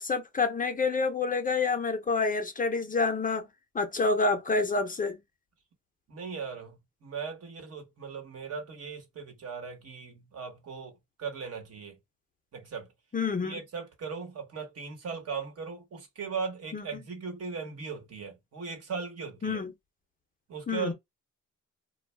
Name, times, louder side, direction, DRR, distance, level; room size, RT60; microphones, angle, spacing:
voice 1, 0.0-3.5 3.7-5.2 13.1-13.6 16.7-16.8 19.4-19.7 20.7-20.9, left 4 dB, 30° left, 0.6 m, -28 dB
voice 2, 6.1-10.9 11.2-12.0 12.5-12.9 13.4-19.6 20.5-20.9, right 5 dB, 55° right, 1.2 m, -38 dB
2.3 x 2.1 x 3.2 m
cardioid pair, 90°, 30 cm